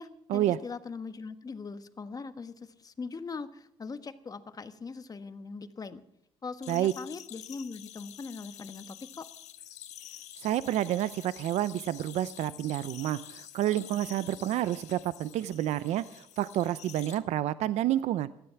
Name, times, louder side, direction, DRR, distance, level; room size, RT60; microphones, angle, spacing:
voice 1, 0.0-6.0 6.4-9.3, left 4 dB, 30° left, 11 dB, 1.3 m, -41 dB
sound 1, 6.6-17.2, left 12 dB, 80° left, 1.4 m, -48 dB
voice 2, 10.4-18.3, right 13 dB, 75° right, 16 dB, 0.5 m, -29 dB
16.0 x 12.5 x 5.8 m, 0.77 s
cardioid pair, 85°, 12 cm